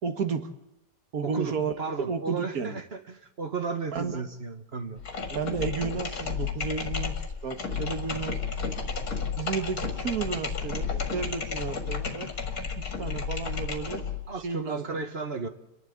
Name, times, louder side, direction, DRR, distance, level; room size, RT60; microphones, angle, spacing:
voice 1, 0.0-0.5 1.1-1.7 2.0-2.8 3.9-4.2 5.3-7.1 7.4-8.8 9.4-12.3 12.8-14.0 14.4-15.0, right 5 dB, 60° right, 8 dB, 1.8 m, -32 dB
voice 2, 1.2-5.0 14.3-15.5, right 4 dB, 40° right, 8 dB, 1.4 m, -34 dB
sound 1, 5.0-14.3, left 5 dB, 55° left, 2.6 m, -32 dB
29.0 x 11.5 x 8.6 m, 0.89 s
omnidirectional pair, 1.8 m